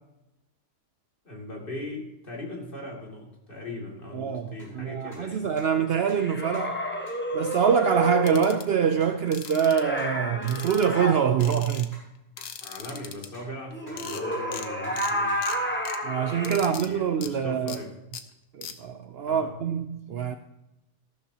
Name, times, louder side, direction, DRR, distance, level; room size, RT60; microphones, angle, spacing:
voice 1, 1.2-5.5 12.6-15.6 16.5-17.9 19.3-19.5, left 1 dB, 35° left, 2.8 m, -39 dB
voice 2, 4.1-6.8 7.3-12.0 16.0-17.8 18.5-20.4, right 7 dB, 90° right, 0.5 m, -25 dB
sound 1, 4.6-4.7 5.1-5.2 5.6-5.7 6.1-6.2 6.5-6.6 7.1-7.2 7.5-7.6 8.0-8.1 8.5-8.6 9.0-9.1 9.4-9.6 10.0-10.1 10.4-10.5 10.9-11.0 11.4-11.5 11.9-12.0 12.4-12.5 12.8-13.0 13.3-13.9 14.3-14.6 14.8-14.9 15.3-15.4, left 1 dB, 55° left, 5.6 m, -49 dB
sound 2, 6.2-8.6 9.6-11.2 13.7-16.7, equal, 10° left, 1.0 m, -30 dB
sound 3, 8.3-8.6 9.3-9.8 10.5-11.1 11.4-11.9 12.4-13.3 13.7-13.8 14.0-14.2 14.5-14.7 15.0-15.1 15.4-16.0 16.4-16.9 17.2-17.3 17.7-17.8 18.1-18.2 18.6-18.7, left 8 dB, 90° left, 1.4 m, -39 dB
14.0 x 12.5 x 2.9 m
omnidirectional pair, 1.7 m